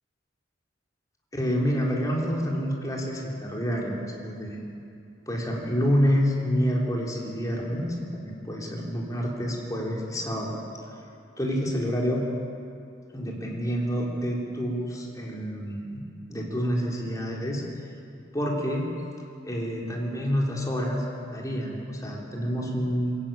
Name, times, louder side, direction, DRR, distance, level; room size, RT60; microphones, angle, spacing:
voice 1, 1.3-4.6 5.3-10.6 11.4-12.3 13.1-16.0 16.3-17.6 18.3-18.9 19.4-21.0 21.3-23.2, equal, 20° left, -2 dB, 3.6 m, -28 dB
23.0 x 15.0 x 9.0 m, 2.6 s
head